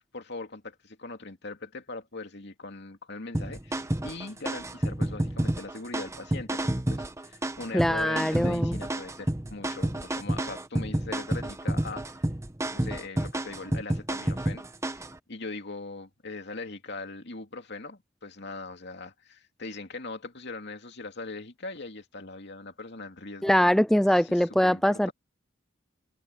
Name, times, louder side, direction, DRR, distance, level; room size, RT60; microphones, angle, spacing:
voice 1, 0.1-12.0 12.7-14.7 14.9-15.0 15.3-23.6 24.1-25.1, left 3 dB, 60° left, 2.6 m, -40 dB
sound 1, 3.3-15.1, right 1 dB, 15° right, 0.9 m, -30 dB
voice 2, 7.7-8.8 23.4-25.1, equal, ahead, 0.3 m, -23 dB
head